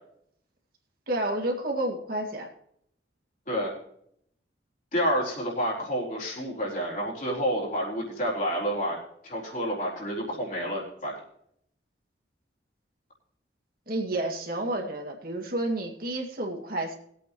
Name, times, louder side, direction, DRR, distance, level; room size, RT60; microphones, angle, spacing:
voice 1, 1.1-2.5 13.9-17.0, right 1 dB, 55° right, 1 dB, 2.1 m, -30 dB
voice 2, 4.9-9.0 9.2-11.2, equal, 45° left, -4 dB, 4.2 m, -29 dB
20.5 x 8.5 x 3.0 m, 0.69 s
head